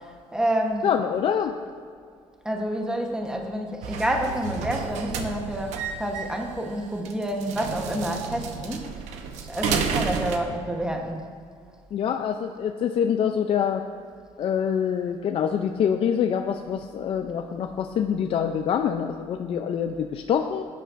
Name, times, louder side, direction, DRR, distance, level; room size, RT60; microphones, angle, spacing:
voice 1, 0.0-0.9 2.4-9.0 9.4-11.2, right 1 dB, 5° right, 2 dB, 1.0 m, -28 dB
voice 2, 0.8-1.5 11.9-13.8 14.4-20.6, left 8 dB, 55° left, 6 dB, 0.4 m, -25 dB
sound 1, 3.8-10.4, right 6 dB, 85° right, 0.8 m, -31 dB
15.0 x 9.1 x 2.5 m, 2.2 s
cardioid pair, 100°, 12 cm